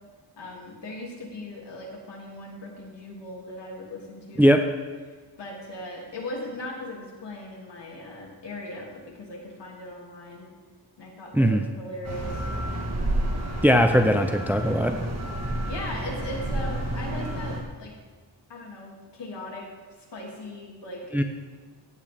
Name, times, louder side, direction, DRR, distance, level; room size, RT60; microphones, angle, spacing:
voice 1, 0.4-4.5 5.4-10.5 11.0-12.5 15.7-17.9 18.5-19.7 20.1-21.0, left 1 dB, 70° left, -2 dB, 2.8 m, -38 dB
sound 1, 12.0-17.6, right 1 dB, 35° right, 1.9 m, -30 dB
voice 2, 13.6-15.1 21.1-21.2, equal, 5° right, 6 dB, 0.5 m, -19 dB
16.0 x 8.6 x 3.6 m, 1.4 s
wide cardioid pair, 130°, 44 cm